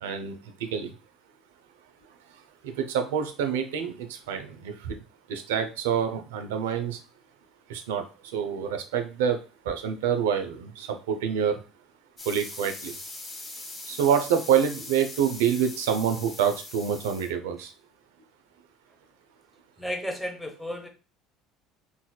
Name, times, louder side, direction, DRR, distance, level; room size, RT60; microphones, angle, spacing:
voice 1, 0.0-0.9 2.6-5.0 5.3-7.0 7.7-8.1 8.3-9.4 9.6-11.6 12.3-12.9 13.9-17.7, right 8 dB, 85° right, 7 dB, 0.5 m, -27 dB
sound 1, 12.2-17.3, left 2 dB, 20° left, 1.1 m, -41 dB
voice 2, 19.8-20.9, equal, 5° left, 4 dB, 0.8 m, -33 dB
3.9 x 2.4 x 2.2 m, 0.33 s
hypercardioid pair, 80°, 0 cm